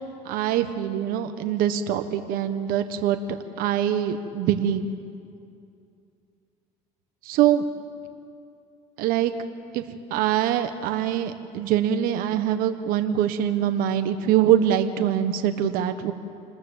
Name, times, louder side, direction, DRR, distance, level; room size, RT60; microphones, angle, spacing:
voice 1, 0.2-4.8 7.2-7.7 9.0-9.3 9.7-9.8 10.1-16.1, right 10 dB, 70° right, 8 dB, 1.3 m, -23 dB
27.0 x 20.5 x 7.4 m, 2.5 s
supercardioid pair, 90°, 15 cm